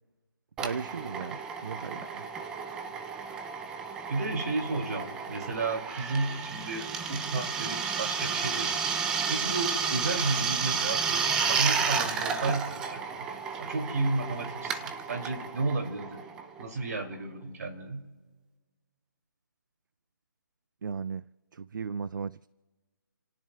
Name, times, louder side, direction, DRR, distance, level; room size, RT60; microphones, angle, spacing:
Drill, 0.6-16.9, right 6 dB, 5° right, 0.4 m, -32 dB
voice 1, 0.6-2.2 20.8-21.2 21.5-22.5, right 6 dB, 70° right, 0.4 m, -36 dB
voice 2, 4.1-8.8 9.3-13.3 13.6-16.2 16.6-18.1, right 3 dB, 50° right, 2.6 m, -32 dB
30.0 x 17.5 x 2.3 m
hypercardioid pair, 160°, 11 cm